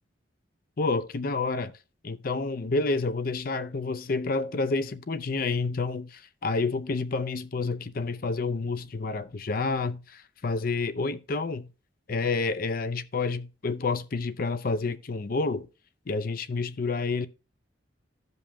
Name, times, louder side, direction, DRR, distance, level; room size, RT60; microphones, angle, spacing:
voice 1, 0.8-1.7 2.0-11.7 12.1-15.7 16.1-17.3, left 3 dB, 50° left, 0.5 m, -29 dB
16.0 x 5.3 x 2.2 m
head